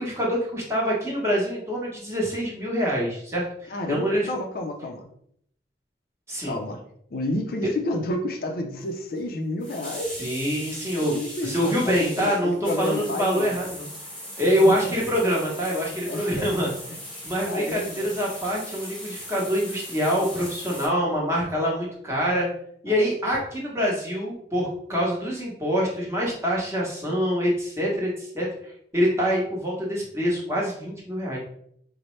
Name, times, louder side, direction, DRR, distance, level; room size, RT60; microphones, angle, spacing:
voice 1, 0.0-4.3 6.3-6.6 10.2-11.2 11.4-13.9 14.4-16.7 17.2-22.5 22.8-28.5 28.9-31.4, equal, 15° right, -4 dB, 0.9 m, -25 dB
voice 2, 3.7-5.1 6.4-6.8 7.1-10.3 11.1-13.5 14.5-15.0 16.0-16.7 17.1-18.1 22.9-23.1, left 1 dB, 55° left, 2 dB, 0.4 m, -30 dB
sound 1, 9.2-9.3 9.6-20.9, equal, 5° left, 1.1 m, -39 dB
4.2 x 2.0 x 3.1 m, 0.68 s
head